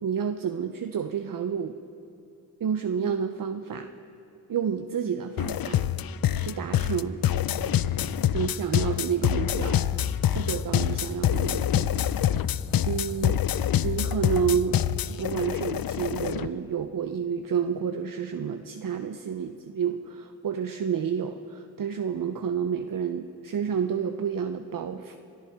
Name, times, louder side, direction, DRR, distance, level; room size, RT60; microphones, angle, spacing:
voice 1, 0.0-1.8 2.6-3.9 4.5-5.8 6.4-7.2 8.3-12.1 12.4-12.6 12.9-13.4 13.8-14.8 15.1-25.2, right 7 dB, 55° right, 7 dB, 0.7 m, -30 dB
sound 1, 5.4-16.5, left 10 dB, 60° left, 0.5 m, -26 dB
23.5 x 13.5 x 3.6 m, 2.9 s
supercardioid pair, 40°, 40 cm